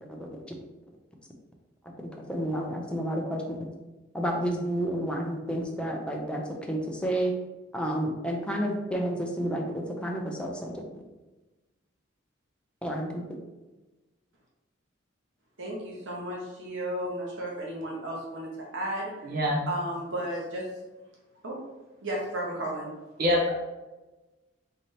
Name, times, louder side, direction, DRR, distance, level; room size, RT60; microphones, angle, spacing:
voice 1, 2.0-3.6 4.1-7.3 7.7-10.8 12.8-13.1, right 1 dB, 5° left, 0 dB, 0.5 m, -30 dB
voice 2, 15.6-19.3 19.7-20.7 21.4-21.6 22.0-22.9, right 1 dB, 70° right, -3 dB, 1.0 m, -33 dB
voice 3, 23.2-23.5, left 1 dB, 50° right, -2 dB, 0.6 m, -24 dB
4.1 x 3.3 x 2.7 m, 1.1 s
head